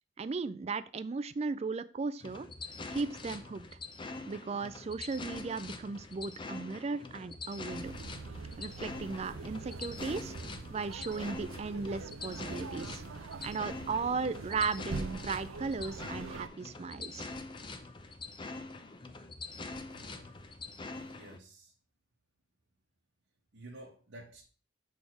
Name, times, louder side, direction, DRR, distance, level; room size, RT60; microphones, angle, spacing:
voice 1, 0.2-2.5 2.9-3.7 4.3-7.9 8.6-10.3 10.7-13.0 13.4-17.3, right 4 dB, 30° right, 14 dB, 0.3 m, -36 dB
sound 1, 2.2-21.4, left 3 dB, 25° left, 0.5 m, -44 dB
sound 2, 7.7-16.5, right 4 dB, 90° right, 0.5 m, -44 dB
voice 2, 19.9-20.4 20.9-21.7 23.5-24.4, right 1 dB, 70° right, -2 dB, 1.1 m, -51 dB
6.3 x 3.5 x 5.9 m, 0.39 s
head